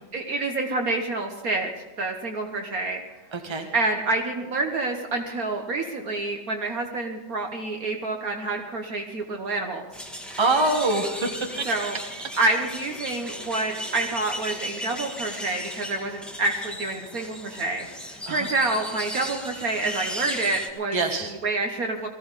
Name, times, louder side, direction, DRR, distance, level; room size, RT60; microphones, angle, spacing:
voice 1, 0.1-1.7 2.0-3.0 3.7-9.8 11.7-12.0 12.4-21.0 21.4-22.1, right 2 dB, 55° right, 3 dB, 1.4 m, -28 dB
voice 2, 3.3-3.7 10.4-11.7 18.3-18.5 20.9-21.3, right 2 dB, 15° right, 3 dB, 1.4 m, -24 dB
sound 1, 9.9-20.7, equal, ahead, 1.1 m, -36 dB
20.0 x 15.0 x 4.1 m, 1.1 s
omnidirectional pair, 2.0 m